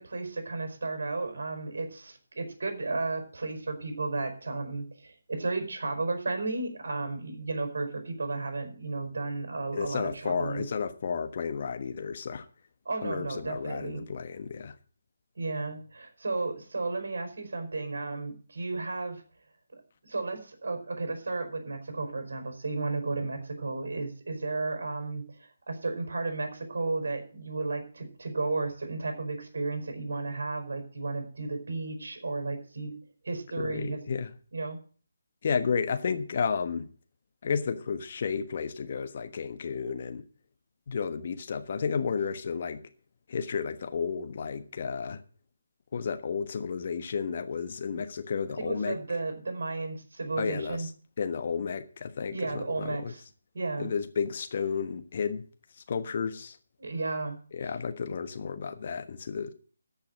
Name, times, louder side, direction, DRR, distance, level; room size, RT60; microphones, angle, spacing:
voice 1, 0.0-10.7 12.8-14.0 15.4-19.2 19.7-32.9 33.2-34.0 34.5-34.8 48.6-50.9 52.3-53.2 53.5-53.9 56.8-57.4 57.6-57.7, right 3 dB, 55° right, 4.7 m, -33 dB
voice 2, 9.7-12.5 13.0-14.7 33.6-34.3 35.4-36.9 37.4-40.2 40.9-42.8 43.3-45.2 45.9-49.0 50.4-50.9 51.2-53.1 53.8-55.4 55.9-56.6 57.5-59.5, left 6 dB, 40° left, 1.3 m, -32 dB
13.5 x 5.7 x 9.0 m
figure-of-eight pair, 150°, 0 cm